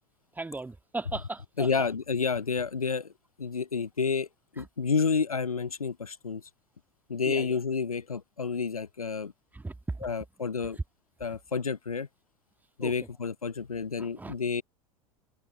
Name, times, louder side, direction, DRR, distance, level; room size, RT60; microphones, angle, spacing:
voice 1, 0.4-1.7 7.3-7.6 9.5-10.1 12.8-12.9 14.0-14.3, right 3 dB, 10° right, 2.2 m, -37 dB
voice 2, 1.6-3.1 3.4-4.3 4.5-6.4 7.1-9.3 10.0-10.8 11.2-12.1 12.8-14.6, left 5 dB, 85° left, 0.8 m, -30 dB
figure-of-eight pair, 80°, 18 cm